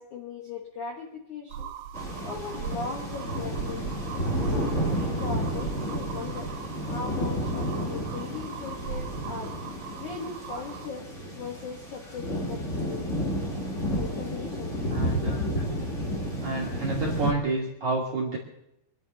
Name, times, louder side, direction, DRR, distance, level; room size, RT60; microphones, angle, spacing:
voice 1, 0.0-1.7 2.2-3.9 4.4-9.5 10.0-13.1 14.0-14.7 15.1-15.7, left 5 dB, 75° left, 1 dB, 1.7 m, -39 dB
sound 1, 1.5-10.9, right 8 dB, 85° right, 3.2 m, -39 dB
sound 2, 1.9-17.3, equal, 50° left, 0.8 m, -31 dB
voice 2, 14.9-15.3 16.4-18.4, right 3 dB, 60° right, -3 dB, 2.0 m, -29 dB
25.5 x 11.5 x 4.0 m, 0.82 s
omnidirectional pair, 5.8 m